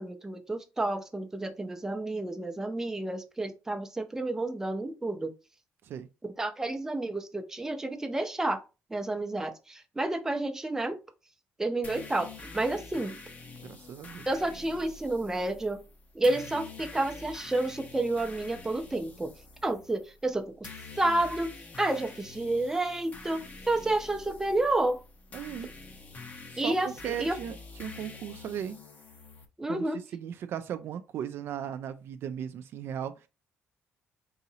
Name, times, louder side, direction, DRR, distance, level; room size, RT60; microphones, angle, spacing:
voice 1, 0.0-5.3 6.4-8.6 8.9-11.0 11.6-13.1 14.3-15.8 16.1-19.3 19.6-20.7 21.0-21.5 21.8-25.0 26.6-27.4 29.6-30.0, right 2 dB, 10° right, 0.6 m, -30 dB
sound 1, 11.8-29.4, left 3 dB, 35° left, 0.8 m, -47 dB
voice 2, 13.6-14.3 25.3-25.7 26.5-28.8 29.7-29.8 30.1-33.3, right 9 dB, 60° right, 0.3 m, -37 dB
3.9 x 2.8 x 2.8 m
cardioid pair, 115°, 4 cm